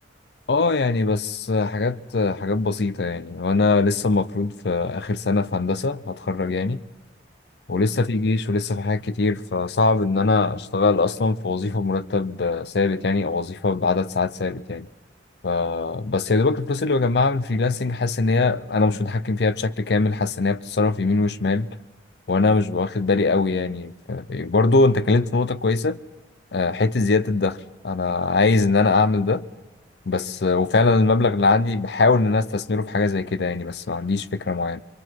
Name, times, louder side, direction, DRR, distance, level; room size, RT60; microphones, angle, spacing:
voice 1, 0.5-6.8 7.7-14.9 15.4-21.7 22.3-26.0 26.5-29.4 30.1-34.8, left 3 dB, 60° left, 0.6 m, -22 dB
25.0 x 24.0 x 4.6 m
head